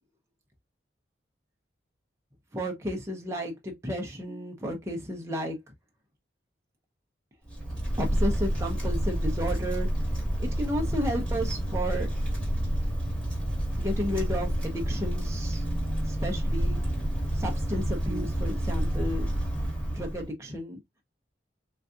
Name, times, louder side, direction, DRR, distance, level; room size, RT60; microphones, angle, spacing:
voice 1, 2.5-5.6 8.0-9.9 10.4-12.1 13.8-15.6 16.1-16.8 17.3-19.3 19.9-20.8, equal, 15° right, 0.6 m, -32 dB
Wind, 7.5-20.3, equal, 5° left, 1.3 m, -29 dB
3.9 x 2.5 x 2.3 m
head